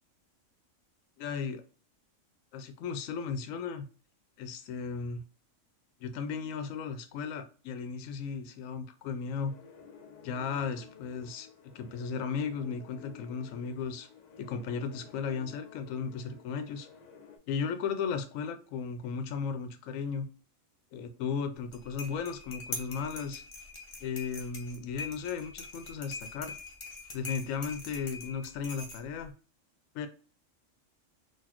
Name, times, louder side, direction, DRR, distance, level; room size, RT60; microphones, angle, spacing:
voice 1, 1.2-1.6 2.5-3.9 4.4-5.2 6.0-9.6 10.2-11.5 11.7-14.1 14.4-16.9 17.5-20.3 20.9-23.4 24.0-26.6 27.1-29.3 29.9-30.1, left 6 dB, 80° left, 9 dB, 1.0 m, -35 dB
sound 1, 9.5-17.4, left 7 dB, 65° left, 0.4 m, -53 dB
sound 2, 21.6-29.3, left 3 dB, 30° left, 0.7 m, -43 dB
4.0 x 2.6 x 2.9 m, 0.38 s
omnidirectional pair, 1.4 m